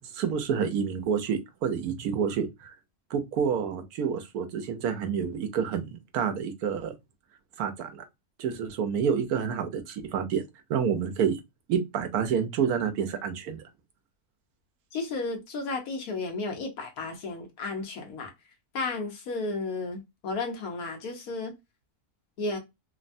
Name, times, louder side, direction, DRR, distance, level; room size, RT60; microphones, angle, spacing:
voice 1, 0.1-2.7 3.1-6.9 7.6-8.0 8.4-10.4 10.7-11.4 11.7-13.6, right 7 dB, 75° right, 1.1 m, -28 dB
voice 2, 14.9-18.3 18.7-21.5 22.4-22.6, left 3 dB, 70° left, 1.3 m, -33 dB
3.2 x 2.1 x 2.5 m
omnidirectional pair, 1.7 m